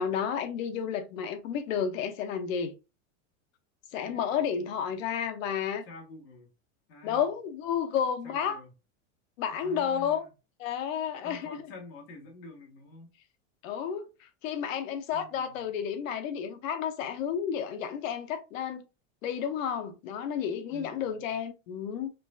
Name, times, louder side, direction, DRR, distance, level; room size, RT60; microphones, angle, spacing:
voice 1, 0.0-2.7 3.9-5.8 7.0-8.6 9.4-10.2 10.6-11.5 13.6-18.8 19.2-22.1, left 8 dB, 85° left, 0.9 m, -31 dB
voice 2, 4.0-4.7 5.8-6.5 6.9-7.3 8.2-8.7 9.5-10.3 11.2-13.1 15.1-15.6 20.7-21.2, left 2 dB, 55° left, 1.6 m, -48 dB
5.0 x 2.4 x 2.3 m
supercardioid pair, 155°, 39 cm